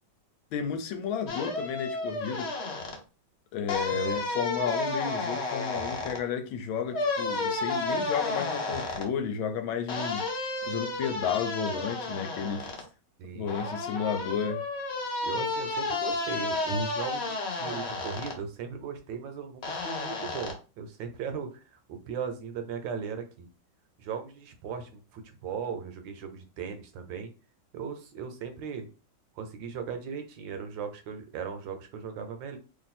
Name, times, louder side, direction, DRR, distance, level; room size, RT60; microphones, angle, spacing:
voice 1, 0.5-2.5 3.5-10.2 10.7-12.7 13.3-14.6, left 7 dB, 90° left, 1.4 m, -32 dB
sound 1, 1.3-3.0 3.7-6.2 6.9-9.1 9.9-12.8 13.5-18.4 19.6-20.5, left 3 dB, 55° left, 0.7 m, -32 dB
voice 2, 13.2-13.6 15.2-23.5 24.0-27.3 27.7-28.9 29.3-32.6, right 6 dB, 75° right, 1.4 m, -37 dB
3.1 x 2.6 x 4.1 m
omnidirectional pair, 2.1 m